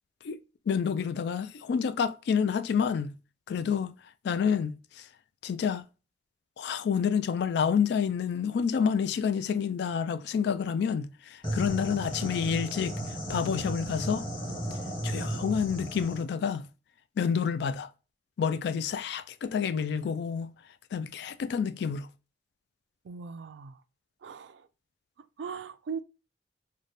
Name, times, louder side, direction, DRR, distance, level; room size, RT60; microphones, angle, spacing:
voice 1, 0.7-3.1 3.5-3.9 4.2-4.7 5.0-5.1 5.4-5.8 6.6-13.0 13.3-14.2 15.0-16.7 17.2-17.9 18.4-20.5 20.9-22.1, left 7 dB, 65° left, 0.3 m, -28 dB
sound 1, 11.4-16.2, right 1 dB, 25° left, 1.4 m, -34 dB
voice 2, 23.0-23.8 24.2-24.7 25.2-26.0, right 6 dB, 75° right, 0.4 m, -39 dB
4.0 x 2.1 x 3.2 m
head